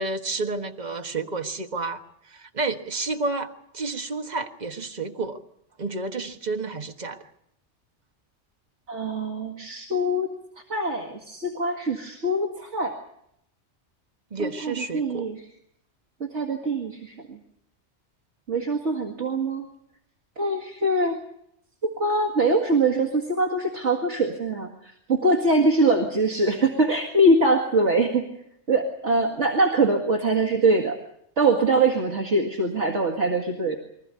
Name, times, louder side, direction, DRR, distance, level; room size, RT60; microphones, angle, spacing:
voice 1, 0.0-2.0 2.3-5.4 5.8-7.2 14.3-15.3, right 3 dB, 40° right, 5 dB, 1.6 m, -30 dB
voice 2, 8.9-10.3 10.7-12.9 14.4-15.4 16.3-17.4 18.5-19.7 20.4-21.2 21.8-28.2 28.7-31.0 31.4-33.8, right 2 dB, 80° right, 1 dB, 2.4 m, -23 dB
24.5 x 14.5 x 9.7 m, 0.76 s
omnidirectional pair, 1.2 m